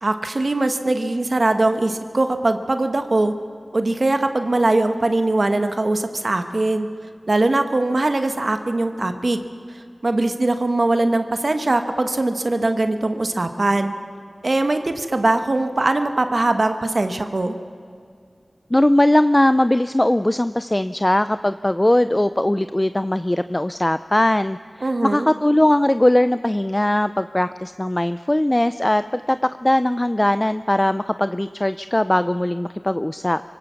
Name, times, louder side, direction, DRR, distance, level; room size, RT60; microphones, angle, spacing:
voice 1, 0.0-3.3 3.7-6.9 7.3-9.4 10.0-13.9 14.4-17.6 24.8-25.3, right 2 dB, 55° right, 7 dB, 1.3 m, -21 dB
voice 2, 18.7-33.4, left 1 dB, 20° left, 12 dB, 0.4 m, -20 dB
25.0 x 17.0 x 7.0 m, 2.3 s
wide cardioid pair, 55°, 0 cm